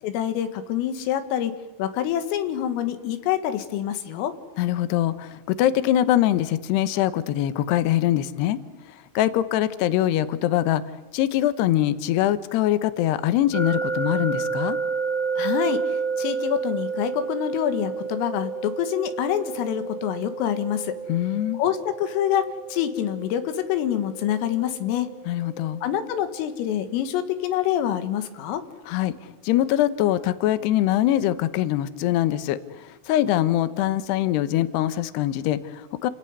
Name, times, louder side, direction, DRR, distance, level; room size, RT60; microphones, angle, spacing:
voice 1, 0.0-1.5 1.8-4.3 15.4-20.9 21.5-22.4 22.7-25.1 25.8-28.6, left 10 dB, 90° left, 9 dB, 4.3 m, -26 dB
voice 2, 4.6-10.8 11.1-14.8 21.1-21.6 25.3-25.8 28.9-36.1, left 13 dB, 70° left, 14 dB, 2.8 m, -23 dB
sound 1, 13.5-26.4, right 5 dB, 5° right, 2.7 m, -31 dB
29.0 x 17.5 x 9.6 m, 1.1 s
omnidirectional pair, 5.7 m